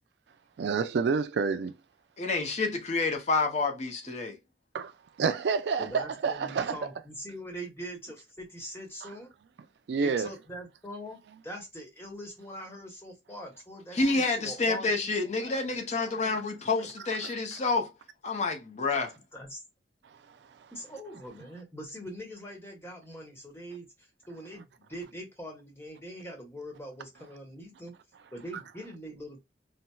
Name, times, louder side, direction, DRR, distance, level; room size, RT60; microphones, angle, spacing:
voice 1, 0.6-1.8 4.7-4.9 5.2-6.8 9.0-9.1 9.9-10.3 17.2-17.6 20.0-20.7, right 5 dB, 65° right, 0.3 m, -29 dB
voice 2, 2.2-4.4 13.9-17.9 18.2-19.1, left 3 dB, 40° left, 0.5 m, -28 dB
voice 3, 5.8-9.3 10.0-11.2 11.4-15.5 16.0-16.3 16.7-16.9 19.3-19.6 20.7-23.9 24.3-27.9 28.3-29.4, equal, 15° left, 1.0 m, -43 dB
4.2 x 2.0 x 2.2 m
head